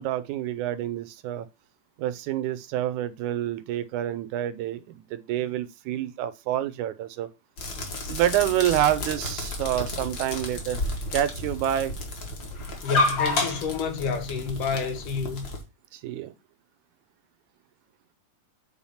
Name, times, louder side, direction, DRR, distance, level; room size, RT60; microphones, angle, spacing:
voice 1, 0.0-1.5 2.0-7.3 8.1-10.8 11.1-12.0 15.9-16.3, right 12 dB, 75° right, 2.1 m, -28 dB
sound 1, 7.6-15.6, left 2 dB, 40° left, 2.4 m, -31 dB
voice 2, 12.8-15.5, left 5 dB, 80° left, 3.0 m, -29 dB
8.8 x 3.9 x 5.6 m
omnidirectional pair, 3.6 m